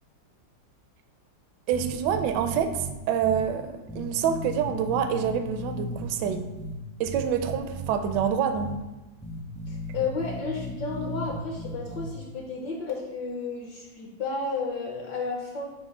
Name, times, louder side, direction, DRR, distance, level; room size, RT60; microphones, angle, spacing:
sound 1, 1.7-2.9 3.2-3.4 3.9-6.7 7.0-8.2 8.5-8.7 9.2-12.1, right 1 dB, 5° left, 0.5 m, -36 dB
voice 1, 1.7-6.5 7.0-8.7, right 8 dB, 75° right, 8 dB, 1.1 m, -27 dB
voice 2, 9.7-15.7, left 4 dB, 65° left, -1 dB, 1.5 m, -32 dB
7.9 x 2.6 x 4.8 m, 1.1 s
omnidirectional pair, 2.1 m